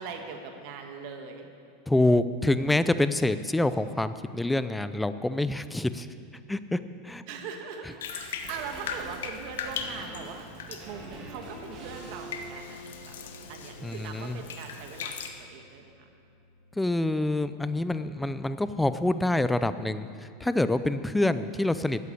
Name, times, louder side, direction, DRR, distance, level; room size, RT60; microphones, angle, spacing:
voice 1, 0.0-1.5 7.3-13.2 13.5-15.1 15.4-16.1, right 5 dB, 55° right, 4 dB, 1.4 m, -41 dB
voice 2, 1.9-6.1 6.5-6.8 7.0-7.2 13.8-14.4 16.8-22.1, left 2 dB, 5° left, 12 dB, 0.5 m, -26 dB
Bathtub (filling or washing), 8.0-15.3, left 6 dB, 90° left, 1.1 m, -40 dB
sound 1, 8.1-17.5 17.8-17.9, right 1 dB, 35° right, 2.6 m, -47 dB
12.5 x 8.2 x 8.4 m, 2.3 s
supercardioid pair, 135°, 0 cm